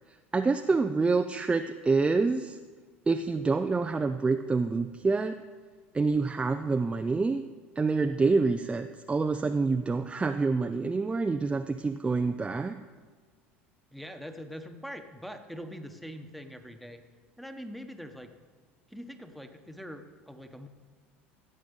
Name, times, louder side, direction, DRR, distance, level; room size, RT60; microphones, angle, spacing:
voice 1, 0.3-2.6 3.1-5.4 5.9-7.4 7.8-12.8, right 4 dB, 15° right, 7 dB, 0.6 m, -27 dB
voice 2, 13.9-17.0 17.4-18.3 18.9-20.7, equal, ahead, 7 dB, 1.3 m, -43 dB
16.5 x 7.6 x 5.5 m, 1.5 s
hypercardioid pair, 75°, 6 cm